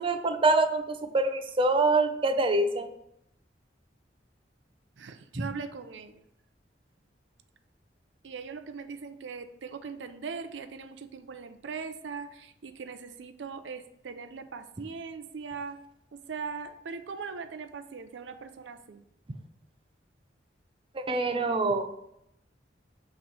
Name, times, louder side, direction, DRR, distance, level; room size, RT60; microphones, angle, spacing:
voice 1, 0.0-2.9 20.9-22.0, right 2 dB, 30° right, 7 dB, 0.5 m, -25 dB
voice 2, 5.0-6.1 8.2-15.8 16.1-19.0, right 5 dB, 80° right, 9 dB, 0.5 m, -40 dB
5.9 x 3.1 x 5.4 m, 0.80 s
head